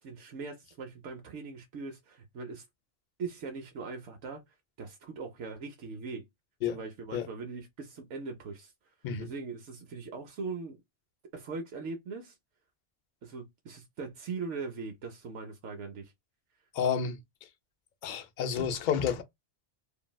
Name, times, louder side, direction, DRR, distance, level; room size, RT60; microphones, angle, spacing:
voice 1, 0.0-2.6 3.2-4.4 4.8-6.3 6.7-8.7 9.2-10.8 11.3-12.4 13.2-16.1, right 4 dB, 90° right, 1.0 m, -40 dB
voice 2, 16.7-17.2 18.0-19.2, left 7 dB, 55° left, 0.5 m, -30 dB
3.0 x 2.6 x 2.2 m
omnidirectional pair, 1.2 m